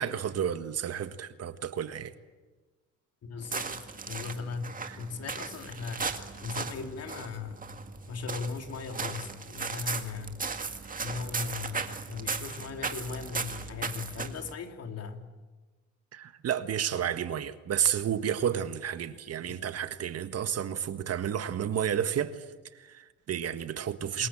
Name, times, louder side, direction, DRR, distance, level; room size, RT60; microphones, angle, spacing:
voice 1, 0.0-2.1 4.8-5.0 16.1-22.5 22.7-24.3, right 9 dB, 50° right, 1.6 m, -31 dB
voice 2, 3.2-6.1 6.4-7.7 8.1-10.4 11.0-15.3 19.5-19.6 24.2-24.3, left 5 dB, 55° left, 3.1 m, -38 dB
sound 1, 3.4-14.5, right 4 dB, 25° right, 2.1 m, -37 dB
27.5 x 21.5 x 8.8 m
cardioid pair, 95°, 31 cm